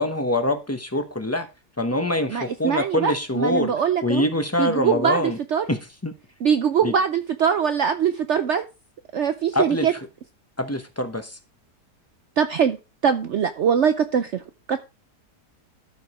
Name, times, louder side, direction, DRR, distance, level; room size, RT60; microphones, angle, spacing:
voice 1, 0.0-1.5 1.8-3.7 4.0-5.4 5.7-5.8 6.0-6.1 6.8-6.9 9.5-9.9 10.6-11.4, left 1 dB, 15° left, 0.5 m, -24 dB
voice 2, 2.3-4.3 4.6-5.7 6.4-8.6 9.1-9.9 12.4-12.8 13.0-14.4 14.7-14.8, right 7 dB, 70° right, 0.6 m, -22 dB
13.0 x 4.9 x 4.8 m
omnidirectional pair, 1.8 m